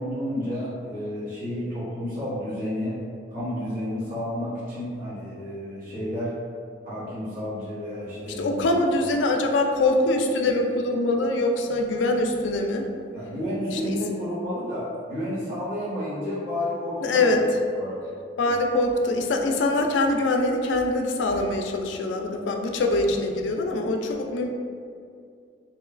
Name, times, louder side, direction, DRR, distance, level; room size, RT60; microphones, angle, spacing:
voice 1, 0.0-3.0 3.3-6.4 6.8-8.8 13.1-17.4 17.7-17.9, left 1 dB, 50° right, -11 dB, 1.0 m, -31 dB
voice 2, 8.4-12.9 13.7-13.8 17.0-17.4 18.4-24.5, left 2 dB, 85° left, 3 dB, 0.4 m, -23 dB
3.0 x 2.9 x 2.4 m, 2.4 s
head